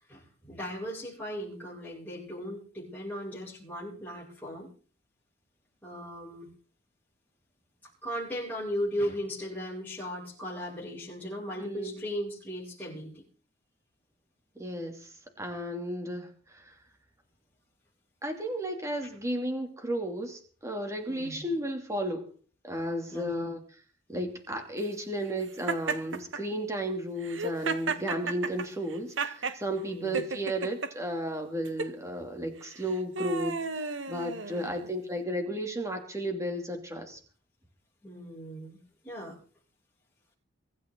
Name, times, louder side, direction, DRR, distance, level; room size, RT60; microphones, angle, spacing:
voice 1, 0.1-4.7 5.8-6.5 8.0-13.2 21.1-21.4 23.1-23.3 29.8-30.2 34.5-35.0 38.0-39.4, equal, 10° left, -7 dB, 7.5 m, -37 dB
voice 2, 11.6-12.0 14.6-16.8 18.2-22.3 22.6-23.6 24.1-37.2, equal, 15° right, 4 dB, 3.0 m, -34 dB
Laughter, 25.7-26.4 27.2-29.6 30.1-30.9 31.6-31.9 32.7-34.9, right 3 dB, 70° right, 1.4 m, -33 dB
24.0 x 12.5 x 4.0 m, 0.41 s
head